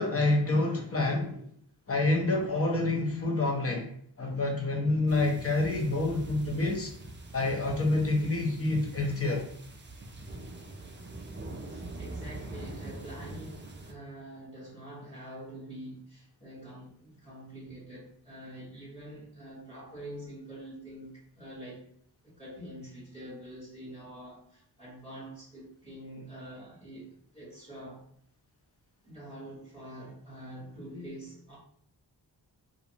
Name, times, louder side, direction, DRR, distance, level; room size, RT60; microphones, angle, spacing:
voice 1, 0.0-1.4 1.9-3.9 4.2-6.9 7.3-9.4, left 2 dB, 35° left, 0.6 m, -27 dB
sound 1, 5.1-13.9, right 2 dB, 25° right, 0.4 m, -43 dB
voice 2, 11.6-21.8 22.2-28.1 29.0-31.6, right 1 dB, 15° left, 1.2 m, -45 dB
2.5 x 2.5 x 2.7 m
wide cardioid pair, 110°, 44 cm